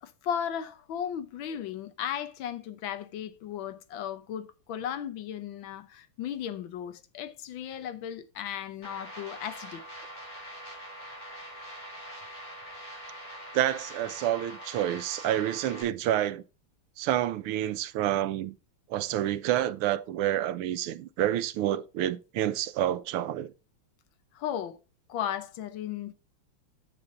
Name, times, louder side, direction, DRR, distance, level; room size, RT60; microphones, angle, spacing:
voice 1, 0.0-9.8 24.3-24.8 25.1-26.1, left 9 dB, 70° left, 1.4 m, -35 dB
sound 1, 8.8-15.8, equal, 40° left, 4.8 m, -43 dB
voice 2, 13.5-16.4 17.0-18.6 18.9-23.5, right 12 dB, 90° right, 1.6 m, -28 dB
9.4 x 6.9 x 3.7 m
omnidirectional pair, 2.4 m